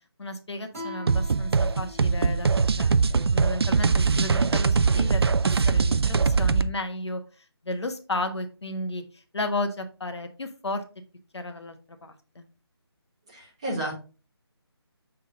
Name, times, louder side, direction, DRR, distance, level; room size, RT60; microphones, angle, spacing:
voice 1, 0.2-5.2 5.7-7.2 7.6-10.8 11.3-11.8 12.0-12.4, left 2 dB, 80° left, 7 dB, 1.2 m, -33 dB
Guitar, 0.7-4.0, left 1 dB, 35° right, 3.5 m, -44 dB
sound 1, 1.1-6.7, right 5 dB, 65° right, 0.4 m, -22 dB
voice 2, 13.3-14.0, right 1 dB, 15° right, -6 dB, 1.4 m, -31 dB
6.8 x 3.7 x 3.8 m, 0.35 s
hypercardioid pair, 180°, 14 cm